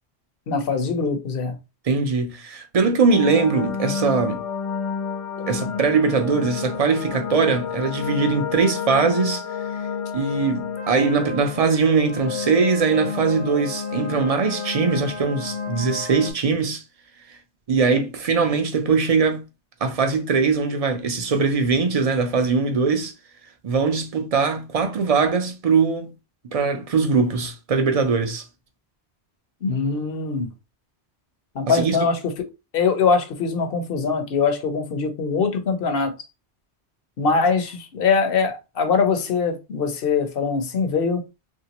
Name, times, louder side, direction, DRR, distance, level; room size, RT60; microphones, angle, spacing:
voice 1, 0.5-1.6 29.6-30.5 31.6-32.2 32.7-36.1 37.2-41.2, left 5 dB, 60° left, 0.8 m, -22 dB
voice 2, 1.8-4.4 5.5-9.4 10.1-16.8 17.7-19.4 19.8-23.1 23.6-26.1 26.5-28.4 31.7-32.0, right 4 dB, 45° right, 0.5 m, -21 dB
sound 1, 3.1-16.3, left 6 dB, 80° left, 1.3 m, -30 dB
3.2 x 2.6 x 2.9 m
omnidirectional pair, 1.1 m